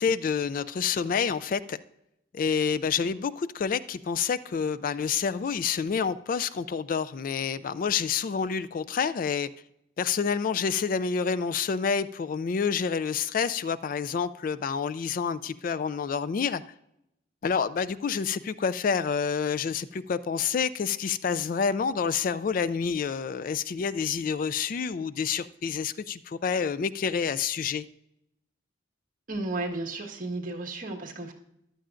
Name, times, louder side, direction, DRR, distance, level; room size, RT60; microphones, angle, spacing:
voice 1, 0.0-1.8 2.3-9.5 10.0-16.6 17.4-27.8, left 6 dB, 45° left, 0.3 m, -28 dB
voice 2, 29.3-31.3, right 2 dB, 45° right, 1.5 m, -33 dB
14.5 x 11.5 x 2.5 m
head